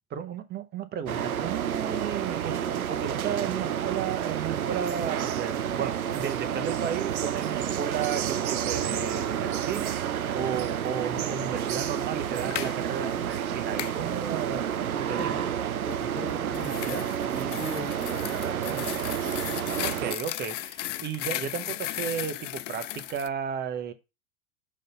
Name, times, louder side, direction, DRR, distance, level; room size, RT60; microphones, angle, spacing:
voice 1, 0.1-15.6 19.8-23.9, right 8 dB, 25° right, 0.9 m, -34 dB
sound 1, 1.1-20.1, right 9 dB, 85° right, 0.6 m, -30 dB
sound 2, 12.3-12.8 13.8-14.0 16.2-23.3, left 14 dB, 60° left, 0.5 m, -36 dB
voice 2, 15.2-15.5 15.8-19.1, right 1 dB, ahead, 0.4 m, -39 dB
6.4 x 4.0 x 5.5 m
figure-of-eight pair, 95°, 42 cm